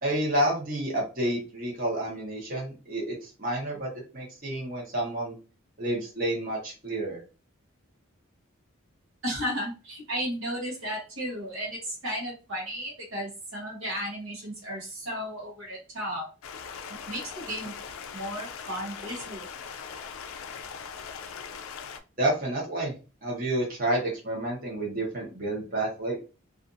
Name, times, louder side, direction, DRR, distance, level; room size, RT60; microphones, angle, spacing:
voice 1, 0.0-5.4 5.8-7.2 22.2-22.9 23.2-26.2, right 1 dB, 40° right, -3 dB, 1.0 m, -29 dB
voice 2, 9.2-16.3 17.1-17.7 18.1-19.5, equal, 70° right, -1 dB, 0.9 m, -34 dB
Stream, 16.4-22.0, left 6 dB, 80° left, 0.4 m, -40 dB
2.5 x 2.5 x 2.5 m, 0.33 s
head